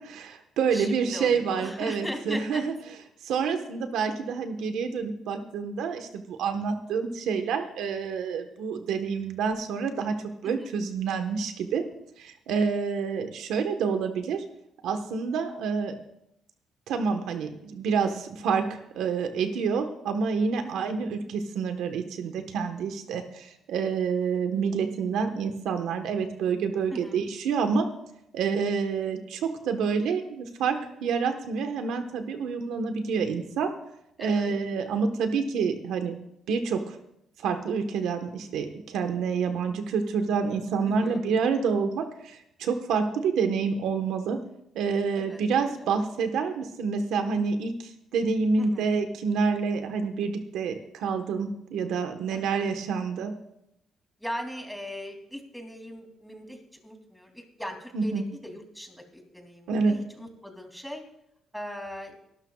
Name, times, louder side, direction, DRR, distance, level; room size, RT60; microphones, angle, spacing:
voice 1, 0.0-2.7 3.2-10.1 10.4-11.8 12.2-14.4 14.8-15.9 16.9-27.9 28.3-33.7 34.2-36.2 36.5-37.0 37.4-44.4 44.7-53.3 57.9-58.2 59.7-60.0, right 5 dB, 85° right, 6 dB, 1.3 m, -28 dB
voice 2, 0.7-2.7 10.4-10.7 20.6-20.9 26.9-27.2 34.2-34.5 39.6-39.7 40.9-41.2 45.1-45.8 48.6-48.9 52.3-52.7 54.2-61.0 61.5-62.2, equal, ahead, 3 dB, 3.0 m, -39 dB
24.5 x 12.5 x 2.4 m, 0.80 s
cardioid pair, 90°, 0 cm